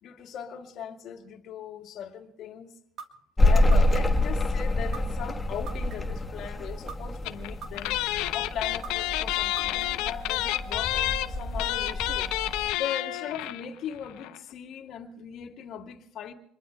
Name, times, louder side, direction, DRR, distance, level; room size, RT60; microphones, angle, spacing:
voice 1, 0.0-2.7 3.4-8.0 8.3-12.3 12.8-16.3, left 8 dB, 55° left, 2.3 m, -39 dB
sound 1, 3.0-3.1 3.7-4.2 4.9-5.0 5.7-6.2 6.9-7.0 7.6-8.1 8.8-8.9 9.6-10.1, right 6 dB, 50° right, 2.9 m, -40 dB
sound 2, 3.4-12.7, left 1 dB, 15° left, 1.2 m, -27 dB
sound 3, 7.3-7.5 7.8-13.7 13.9-14.0 14.2-14.4, left 16 dB, 75° left, 0.9 m, -29 dB
27.0 x 22.0 x 2.3 m
cardioid pair, 120°, 0 cm